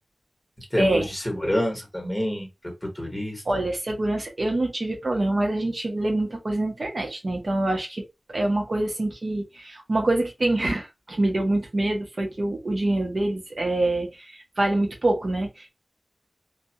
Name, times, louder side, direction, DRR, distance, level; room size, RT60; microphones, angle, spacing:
voice 1, 0.7-2.5 2.8-3.6, equal, 15° left, 1.1 m, -27 dB
voice 2, 3.5-15.7, right 2 dB, 60° right, 0.7 m, -25 dB
2.2 x 2.1 x 2.7 m
wide cardioid pair, 75°, 0 cm